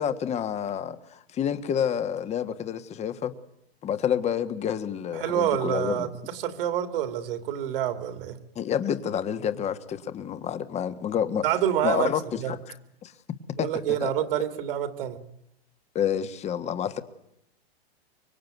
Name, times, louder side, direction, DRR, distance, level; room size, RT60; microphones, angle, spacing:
voice 1, 0.0-3.3 3.8-6.1 8.5-11.4 11.8-12.6 13.0-13.1 13.6-14.1 15.9-17.0, left 8 dB, 20° left, 11 dB, 1.6 m, -29 dB
voice 2, 5.1-8.4 11.4-12.1 12.4-12.5 13.6-15.2, right 11 dB, 60° right, 10 dB, 3.1 m, -27 dB
24.5 x 24.0 x 9.4 m, 0.81 s
hypercardioid pair, 140°, 31 cm